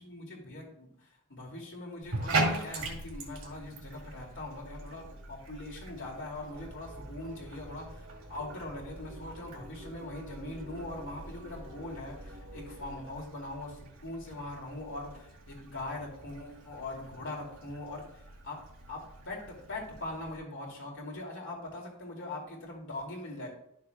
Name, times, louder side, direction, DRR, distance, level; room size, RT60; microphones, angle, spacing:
voice 1, 0.0-23.5, left 2 dB, 60° left, -1 dB, 2.4 m, -42 dB
Bathtub (filling or washing), 2.0-20.4, right 2 dB, 85° right, 2.1 m, -41 dB
sound 1, 6.5-13.2, right 1 dB, 70° right, 0.9 m, -49 dB
12.0 x 6.5 x 2.3 m, 0.74 s
head